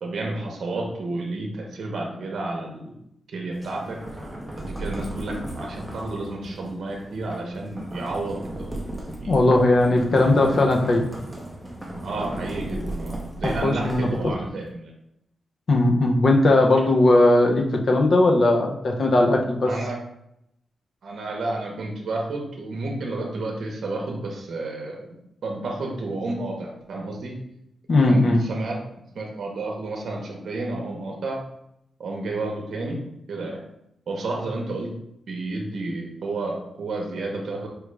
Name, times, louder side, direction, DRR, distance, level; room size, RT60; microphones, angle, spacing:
voice 1, 0.0-2.9 3.3-4.0 4.7-8.7 9.2-9.5 9.9-10.3 12.0-14.9 19.6-20.0 21.0-25.1 25.4-27.3 28.0-28.8 29.1-31.4 32.0-33.0 33.3-33.6 34.1-34.9 35.3-37.7, right 2 dB, 65° right, 0 dB, 0.8 m, -31 dB
sound 1, 3.5-14.5, right 1 dB, 5° right, 0.6 m, -35 dB
voice 2, 9.3-11.1 13.6-14.3 15.7-19.7 27.9-28.4, left 2 dB, 45° left, 2 dB, 0.5 m, -18 dB
4.5 x 2.4 x 3.2 m, 0.80 s
wide cardioid pair, 145°, 0 cm